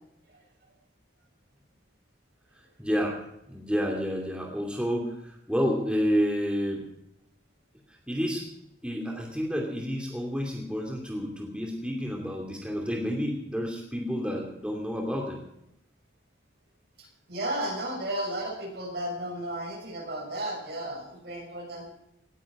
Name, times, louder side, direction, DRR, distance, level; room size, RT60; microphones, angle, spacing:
voice 1, 2.8-3.2 3.5-6.8 8.1-8.4 8.8-15.4, equal, 5° right, 0 dB, 2.6 m, -29 dB
voice 2, 17.0-21.9, right 1 dB, 65° right, 0 dB, 6.4 m, -34 dB
18.5 x 15.0 x 4.9 m, 0.83 s
head